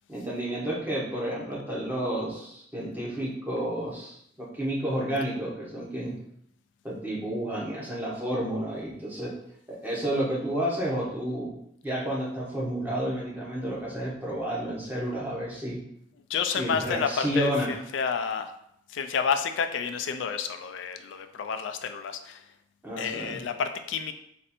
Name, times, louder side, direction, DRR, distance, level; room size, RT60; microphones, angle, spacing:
voice 1, 0.1-6.2 6.8-9.3 9.7-11.5 11.8-15.8 16.6-17.7 22.8-23.4, right 1 dB, 10° right, -5 dB, 1.1 m, -31 dB
voice 2, 16.3-18.5 18.9-22.4 23.0-24.1, left 6 dB, 85° left, 8 dB, 0.4 m, -30 dB
4.2 x 2.6 x 4.2 m, 0.72 s
head